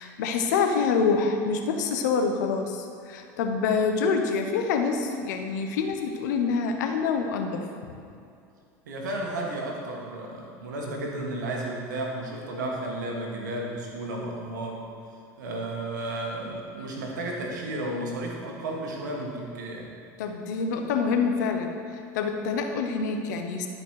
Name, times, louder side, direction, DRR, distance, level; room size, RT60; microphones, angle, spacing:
voice 1, 0.0-7.9 20.2-23.7, left 5 dB, 80° left, 5 dB, 0.9 m, -26 dB
voice 2, 8.8-14.9 15.4-19.9, right 1 dB, 90° right, -1 dB, 1.7 m, -33 dB
11.5 x 5.3 x 4.8 m, 2.5 s
supercardioid pair, 100°, 10 cm